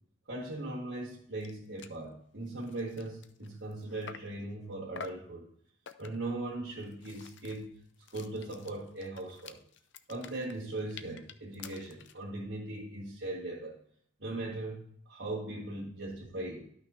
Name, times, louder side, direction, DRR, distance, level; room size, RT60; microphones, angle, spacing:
voice 1, 0.3-5.5 6.0-7.8 8.1-9.6 10.1-13.8 14.2-16.7, right 2 dB, 65° right, -5 dB, 1.8 m, -39 dB
sound 1, 1.1-1.2 1.4-1.5 1.8-2.0 2.5-4.4 5.0-5.3 5.9-6.3 6.8-12.2, left 6 dB, 70° left, 0.5 m, -49 dB
12.5 x 5.9 x 2.7 m, 0.64 s
head